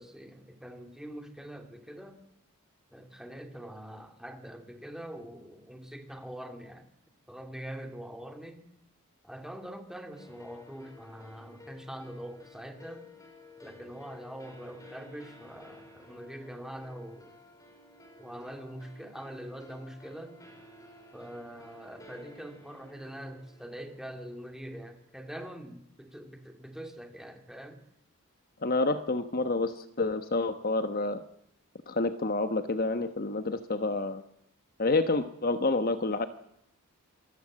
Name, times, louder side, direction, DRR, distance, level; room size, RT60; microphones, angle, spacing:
voice 1, 0.0-2.2 2.9-6.9 7.3-8.6 9.2-13.1 13.6-17.3 18.2-20.4 21.1-27.8, equal, ahead, 5 dB, 2.7 m, -44 dB
sound 1, 10.1-25.5, left 2 dB, 15° left, 5.0 m, -54 dB
voice 2, 28.6-31.2 31.9-34.2 34.8-36.3, left 3 dB, 40° left, 10 dB, 1.1 m, -28 dB
26.5 x 20.5 x 7.6 m, 0.77 s
head